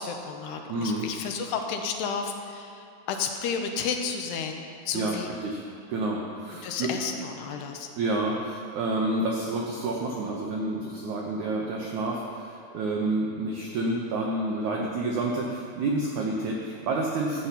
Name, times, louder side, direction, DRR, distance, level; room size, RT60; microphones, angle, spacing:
voice 1, 0.0-5.3 6.6-7.9, left 6 dB, 85° left, 4 dB, 2.9 m, -32 dB
voice 2, 0.7-1.1 4.9-5.6 5.9-6.9 8.0-17.5, right 2 dB, 90° right, -1 dB, 1.6 m, -29 dB
12.5 x 5.8 x 8.2 m, 2.6 s
omnidirectional pair, 4.8 m